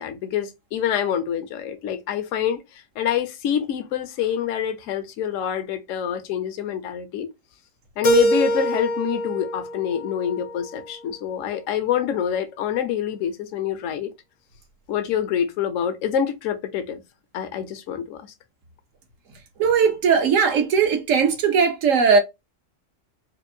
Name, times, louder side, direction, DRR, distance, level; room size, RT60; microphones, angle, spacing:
voice 1, 0.0-7.3 8.0-14.1 14.9-17.0 17.3-18.3, left 9 dB, 80° left, 1.0 m, -26 dB
Keyboard (musical), 8.0-10.9, equal, 55° left, 0.4 m, -24 dB
voice 2, 19.6-22.2, right 6 dB, 80° right, 1.2 m, -18 dB
4.4 x 2.5 x 2.7 m
omnidirectional pair, 1.3 m